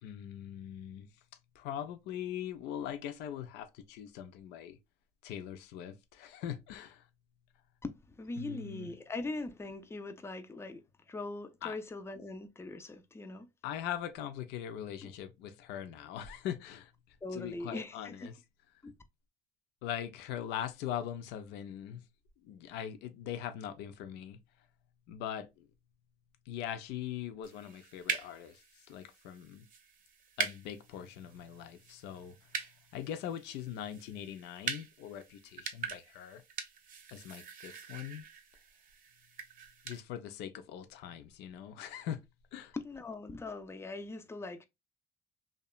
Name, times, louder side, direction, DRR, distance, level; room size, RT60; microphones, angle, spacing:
voice 1, 0.0-1.1 1.6-4.8 5.2-7.1 8.4-9.0 11.6-11.8 13.6-16.9 17.3-18.4 19.8-22.0 22.4-24.4 25.1-25.7 26.5-29.7 30.4-32.5 32.9-36.4 37.1-38.3 39.8-42.2 42.5-42.8, left 10 dB, 90° left, 0.4 m, -41 dB
voice 2, 7.8-13.5 15.0-15.1 17.2-18.3 18.8-18.9 42.7-44.6, left 2 dB, 15° left, 0.4 m, -41 dB
sound 1, 27.4-40.0, right 7 dB, 50° right, 0.6 m, -43 dB
2.8 x 2.2 x 2.2 m
cardioid pair, 110°, 17 cm